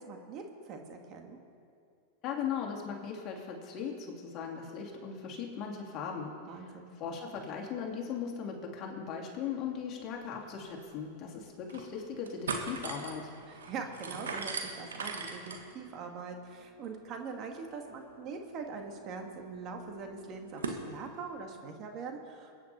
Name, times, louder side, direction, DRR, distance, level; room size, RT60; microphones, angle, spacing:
voice 1, 0.0-1.4 6.5-7.0 13.5-22.6, right 5 dB, 40° right, 3 dB, 1.8 m, -43 dB
voice 2, 2.2-13.3, left 7 dB, 40° left, 0 dB, 2.8 m, -38 dB
sound 1, 10.5-10.6 10.8-10.9 11.4-11.9 12.2-20.8, right 4 dB, 90° right, 1.6 m, -42 dB
23.0 x 9.4 x 4.4 m, 2.5 s
hypercardioid pair, 110°, 0 cm